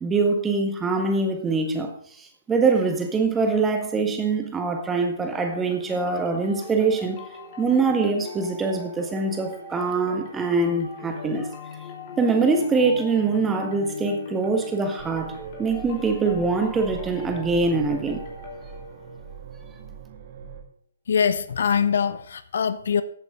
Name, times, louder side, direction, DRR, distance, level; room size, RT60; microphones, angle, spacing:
voice 1, 0.0-1.9 2.2-7.2 7.6-11.5 12.2-15.3 15.6-18.2, right 4 dB, 10° right, 1.5 m, -23 dB
sound 1, 5.2-19.7, left 3 dB, 40° left, 2.9 m, -40 dB
sound 2, 15.0-20.6, right 7 dB, 40° right, 2.2 m, -41 dB
voice 2, 21.1-23.0, left 7 dB, 60° left, 0.9 m, -23 dB
15.0 x 8.2 x 3.8 m
figure-of-eight pair, 135°, 0 cm